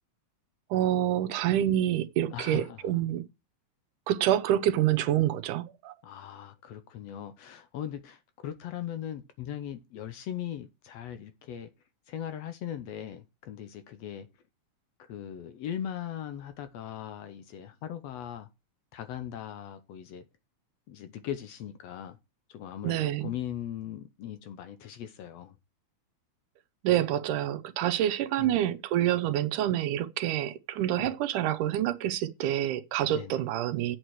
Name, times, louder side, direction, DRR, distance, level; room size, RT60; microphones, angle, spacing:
voice 1, 0.7-3.3 4.1-5.9 22.8-23.3 26.8-34.0, right 12 dB, 90° right, 2.4 m, -27 dB
voice 2, 2.3-3.0 6.0-11.7 12.1-14.3 15.0-18.5 18.9-20.2 20.9-22.2 22.5-25.6 28.4-28.6 31.0-31.1 33.1-33.4, left 10 dB, 70° left, 1.8 m, -39 dB
8.6 x 8.0 x 4.7 m
omnidirectional pair, 3.5 m